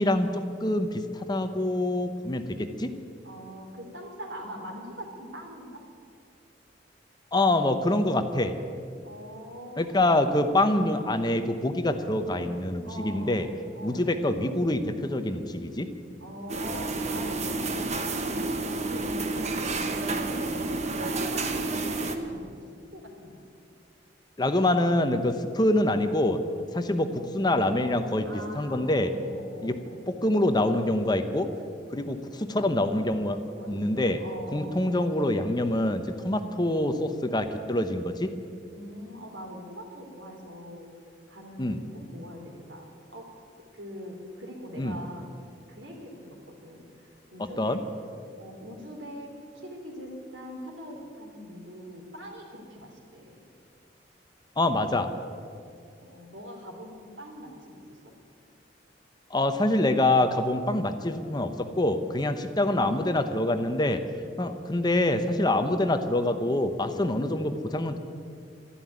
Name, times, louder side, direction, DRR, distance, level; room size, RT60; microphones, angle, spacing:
voice 1, 0.0-2.9 7.3-8.5 9.8-13.5 13.8-15.9 24.4-26.4 26.7-28.3 28.5-29.1 29.6-29.8 30.1-31.5 31.9-33.4 33.7-34.2 34.5-38.3 41.6-41.8 44.8-45.0 47.6-47.8 54.6-55.1 59.3-64.0 64.4-68.0, left 1 dB, 25° left, 8 dB, 0.8 m, -25 dB
voice 2, 3.2-5.8 9.0-10.0 12.3-12.6 12.8-13.5 13.7-14.0 16.2-21.8 22.1-22.6 22.9-23.4 28.2-30.0 33.5-34.9 38.7-40.9 41.3-42.8 43.1-43.3 43.7-45.3 45.7-47.8 48.3-53.5 56.0-58.0, equal, 85° right, 2 dB, 3.4 m, -42 dB
sound 1, 16.5-22.2, right 3 dB, 40° right, 1.1 m, -30 dB
13.0 x 11.5 x 9.5 m, 2.3 s
head